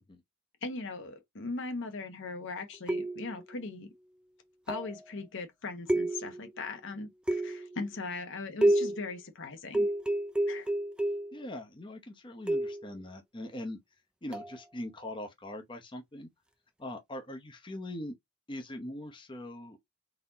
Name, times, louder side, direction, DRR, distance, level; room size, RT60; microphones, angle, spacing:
voice 1, 0.6-3.9 4.7-9.9 10.5-10.7, left 3 dB, 60° left, 0.9 m, -39 dB
sound 1, 2.9-3.4 4.7-5.0 5.9-6.5 7.3-7.8 8.6-9.1 9.7-11.4 12.5-12.9 14.3-14.6, right 1 dB, 5° right, 0.4 m, -29 dB
voice 2, 11.3-13.8 14.2-16.3 16.8-18.1 18.5-19.8, left 1 dB, 20° left, 0.8 m, -41 dB
4.1 x 2.7 x 4.0 m
head